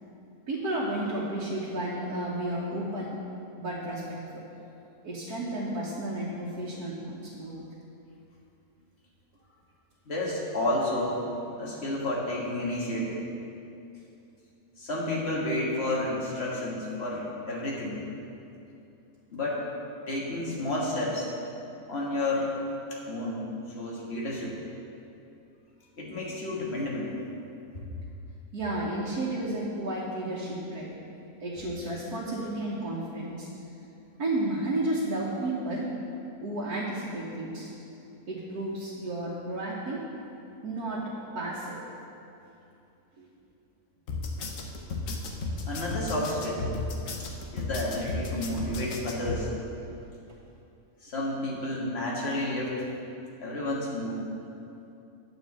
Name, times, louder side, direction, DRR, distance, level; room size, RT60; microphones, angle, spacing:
voice 1, 0.5-3.2 3.6-4.4 5.0-7.6 28.5-30.9 31.4-33.5 34.2-35.9 36.4-37.7 38.3-40.0 40.6-41.8 43.2-43.3, right 1 dB, 85° right, -6 dB, 1.7 m, -32 dB
voice 2, 10.1-11.3 11.6-13.2 14.8-18.0 19.3-19.6 20.1-21.3 21.9-22.5 22.9-23.5 23.8-24.5 26.0-27.1 45.7-46.6 47.5-49.5 51.0-52.8 53.4-54.2, left 1 dB, 45° left, -4 dB, 1.8 m, -31 dB
sound 1, 44.1-49.4, left 3 dB, 65° left, 1.2 m, -33 dB
9.1 x 4.7 x 7.4 m, 2.8 s
omnidirectional pair, 1.6 m